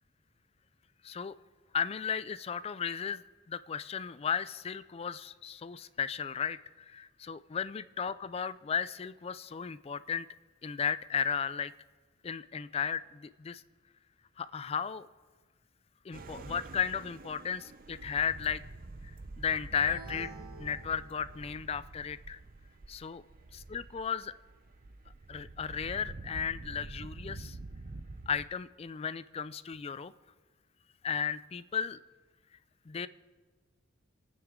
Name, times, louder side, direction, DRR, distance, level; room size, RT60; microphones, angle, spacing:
voice 1, 1.0-1.3 1.7-10.3 10.6-11.7 12.2-13.6 14.4-15.1 16.0-18.6 19.4-20.3 20.6-22.4 22.9-23.2 23.7-24.3 25.3-27.6 28.3-30.1 31.0-32.0 32.9-33.1, left 7 dB, 30° left, 16 dB, 0.3 m, -35 dB
sound 1, 16.1-28.5, right 2 dB, 45° right, 0.6 m, -47 dB
sound 2, 19.8-21.7, right 2 dB, 85° right, 2.7 m, -49 dB
28.5 x 9.6 x 3.7 m, 1.4 s
head